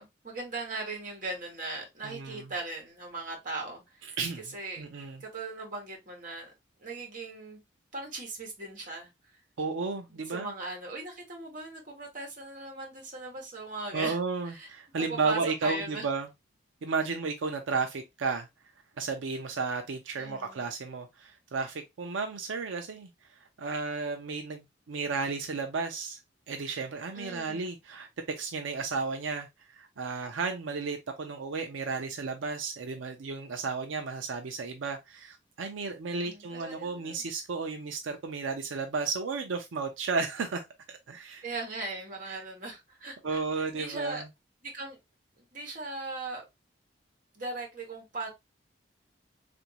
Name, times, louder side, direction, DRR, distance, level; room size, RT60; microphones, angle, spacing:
voice 1, 0.0-4.8 5.2-6.5 6.8-7.6 7.9-9.1 10.1-14.2 14.4-14.7 15.0-16.1 20.2-20.6 27.1-27.7 36.1-37.2 41.4-44.2 44.6-45.0 45.4-46.4 47.3-48.3, right 2 dB, 45° right, 1.3 m, -39 dB
voice 2, 2.0-2.4 4.2-4.4 4.8-5.2 9.6-10.5 13.9-16.3 16.8-18.5 19.0-23.1 23.6-26.2 26.5-29.5 29.8-40.7 41.1-41.4 42.3-42.4 43.2-44.3, right 4 dB, 85° right, 0.5 m, -33 dB
3.4 x 2.6 x 2.9 m
head